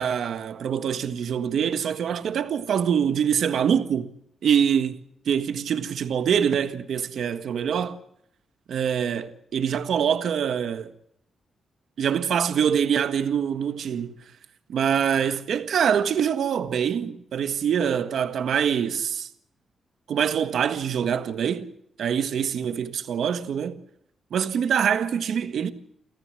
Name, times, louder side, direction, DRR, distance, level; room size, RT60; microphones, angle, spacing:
voice 1, 0.0-4.1 4.4-8.0 8.7-10.9 12.0-14.2 14.7-19.3 20.1-21.7 22.0-23.8 24.3-25.7, right 8 dB, 65° right, 1.6 m, -24 dB
29.5 x 14.0 x 7.7 m
wide cardioid pair, 155°, 0 cm